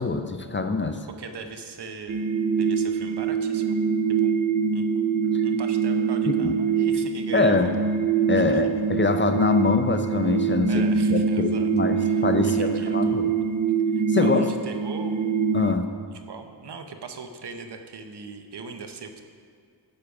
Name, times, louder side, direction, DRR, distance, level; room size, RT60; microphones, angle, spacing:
voice 1, 0.0-1.0 6.3-6.5 7.3-7.7 8.3-10.8 11.1-13.3 14.1-14.5 15.5-15.9, left 4 dB, 25° left, 8 dB, 0.6 m, -24 dB
voice 2, 1.2-3.8 4.2-4.4 4.7-4.8 5.4-7.6 8.4-8.6 10.7-11.7 12.0-13.2 13.9-15.2 16.1-19.2, right 5 dB, 65° right, 6 dB, 0.9 m, -40 dB
sound 1, 2.1-15.7, right 6 dB, 45° right, 0.6 m, -24 dB
10.5 x 6.5 x 4.9 m, 2.3 s
cardioid pair, 75°, 43 cm